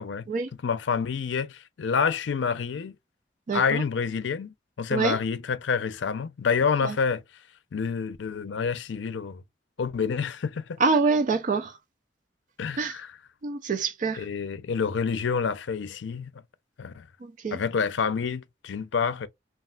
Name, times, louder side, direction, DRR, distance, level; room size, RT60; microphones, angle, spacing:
voice 1, 0.6-3.0 3.5-7.2 7.7-9.4 9.8-10.8 12.6-13.1 14.1-16.4 16.8-17.0 17.5-19.3, left 6 dB, 85° left, 0.5 m, -28 dB
voice 2, 3.5-3.8 4.9-5.2 6.8-6.9 10.8-11.7 12.8-12.9 13.4-14.2 17.2-17.6, right 4 dB, 45° right, 0.4 m, -25 dB
3.3 x 2.3 x 2.2 m
head